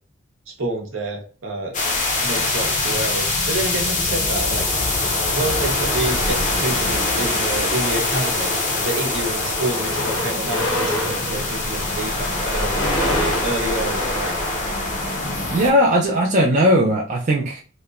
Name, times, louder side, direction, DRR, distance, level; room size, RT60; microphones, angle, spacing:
voice 1, 0.5-1.8 2.2-4.7 5.3-8.5 8.8-14.4, right 2 dB, 70° right, 1 dB, 0.8 m, -28 dB
sound 1, 1.7-15.7, left 2 dB, 35° left, 0.5 m, -23 dB
sound 2, 6.6-7.6 8.4-8.6 8.9-15.4, left 1 dB, 90° left, 0.7 m, -28 dB
voice 2, 15.5-17.6, equal, 35° right, -1 dB, 0.3 m, -18 dB
2.9 x 2.1 x 2.3 m, 0.38 s
head